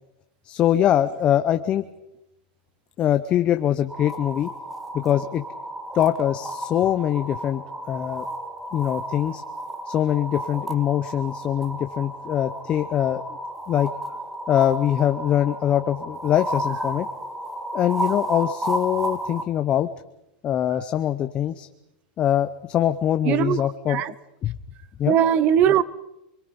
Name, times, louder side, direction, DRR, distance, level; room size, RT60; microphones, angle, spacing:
voice 1, 0.4-1.9 3.0-4.5 5.0-5.4 5.9-7.6 7.9-8.2 8.7-9.4 9.9-13.2 13.7-13.9 14.5-17.1 17.7-19.9 20.4-21.7 22.2-24.0 24.4-24.6 25.0-25.2, left 11 dB, 25° left, 0.7 m, -23 dB
sound 1, 3.9-19.4, right 1 dB, 5° right, 1.7 m, -32 dB
voice 2, 23.3-23.6 23.9-24.1 25.1-25.8, right 9 dB, 30° right, 0.9 m, -19 dB
28.5 x 23.0 x 5.3 m
supercardioid pair, 165°, 5 cm